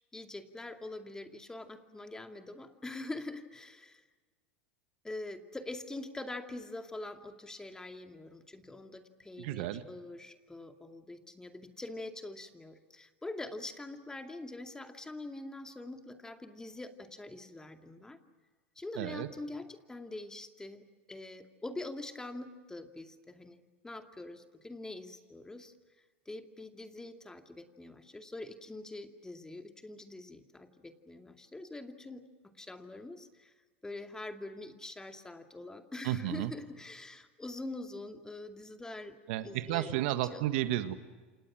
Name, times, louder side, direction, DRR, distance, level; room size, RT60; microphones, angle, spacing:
voice 1, 0.1-4.0 5.0-18.2 18.8-25.7 26.3-33.5 33.8-39.2 39.4-39.9 40.3-40.4, left 2 dB, 10° left, 6 dB, 2.4 m, -44 dB
voice 2, 9.4-9.8 19.0-19.3 36.0-36.5 39.3-41.0, right 14 dB, 65° right, 10 dB, 1.7 m, -32 dB
29.0 x 27.5 x 6.2 m, 1.3 s
hypercardioid pair, 90°, 6 cm